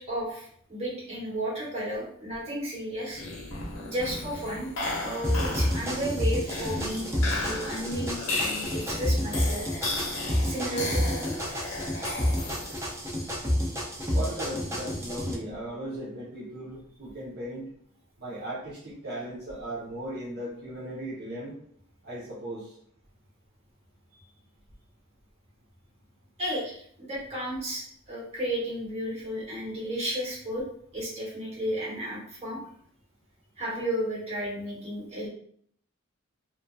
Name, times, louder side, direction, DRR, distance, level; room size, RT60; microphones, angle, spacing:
voice 1, 0.1-3.2 3.8-4.7 5.0-7.1 7.4-9.7 10.4-11.4 26.4-30.6 30.9-32.6 33.6-35.3, equal, 30° right, -6 dB, 1.1 m, -33 dB
sound 1, 3.1-13.0, left 2 dB, 65° left, 0.6 m, -35 dB
sound 2, 5.2-15.3, equal, 15° right, 0.5 m, -29 dB
voice 2, 14.1-17.7 18.2-21.5 22.0-22.7, right 1 dB, 50° right, -8 dB, 0.7 m, -37 dB
2.6 x 2.3 x 2.3 m, 0.64 s
head